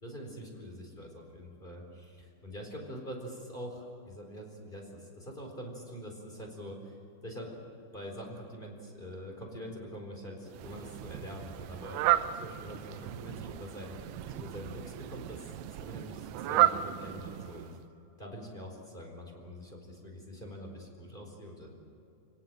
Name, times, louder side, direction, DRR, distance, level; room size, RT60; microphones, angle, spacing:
voice 1, 0.0-6.9 7.2-7.5 7.9-14.0 14.3-17.8 18.2-21.7, equal, 10° left, 1 dB, 4.0 m, -44 dB
Fowl, 10.5-17.9, right 13 dB, 90° right, 3.2 m, -33 dB
28.5 x 17.5 x 7.7 m, 2.8 s
omnidirectional pair, 5.3 m